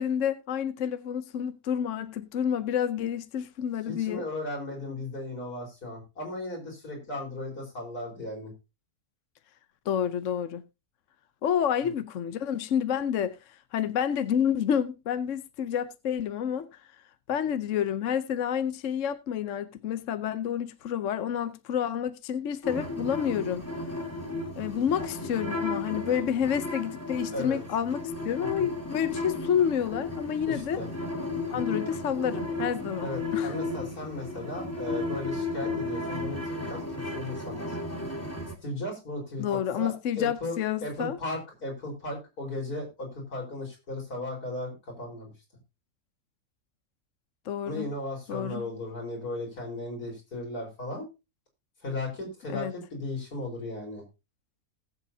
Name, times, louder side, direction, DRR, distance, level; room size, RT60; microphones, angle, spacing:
voice 1, 0.0-4.2 9.9-10.6 11.4-16.7 17.3-23.6 24.6-30.8 31.5-33.5 39.4-41.2 47.5-47.9 48.3-48.7 52.5-52.7, left 9 dB, 60° left, 1.0 m, -29 dB
voice 2, 3.9-8.5 11.8-11.9 24.8-25.0 27.3-27.6 28.4-28.7 30.5-30.9 31.5-31.8 33.0-37.8 38.6-45.3 47.7-51.1 51.8-54.0, left 2 dB, 90° left, 5.1 m, -36 dB
sound 1, 22.6-38.5, left 2 dB, 10° left, 2.3 m, -34 dB
18.5 x 8.0 x 2.7 m
omnidirectional pair, 1.6 m